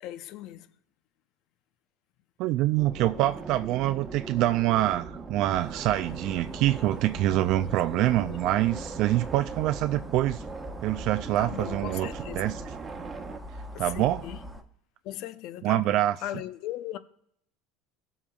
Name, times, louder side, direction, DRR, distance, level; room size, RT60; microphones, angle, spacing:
voice 1, 0.0-0.7 6.4-6.5 7.9-8.4 11.4-12.4 13.7-14.4 15.0-17.0, left 13 dB, 60° left, 0.6 m, -38 dB
voice 2, 2.4-10.4 10.8-12.6 13.8-14.3 15.6-16.2, right 15 dB, 60° right, 0.3 m, -25 dB
sound 1, 2.8-13.4, right 4 dB, 30° right, 1.1 m, -40 dB
sound 2, 5.5-14.6, left 1 dB, 5° right, 1.2 m, -43 dB
17.5 x 7.2 x 2.3 m
hypercardioid pair, 80°, 0 cm